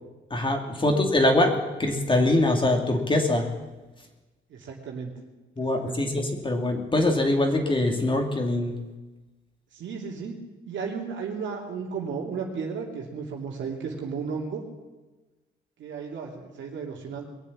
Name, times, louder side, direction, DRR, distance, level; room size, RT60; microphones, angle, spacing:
voice 1, 0.3-3.4 5.6-8.8, left 1 dB, 25° left, 3 dB, 2.7 m, -23 dB
voice 2, 4.5-5.1 5.7-6.1 9.7-10.4 10.7-14.6 15.8-17.2, right 5 dB, 70° right, -1 dB, 2.9 m, -34 dB
22.0 x 7.4 x 8.7 m, 1.2 s
cardioid pair, 90°, 20 cm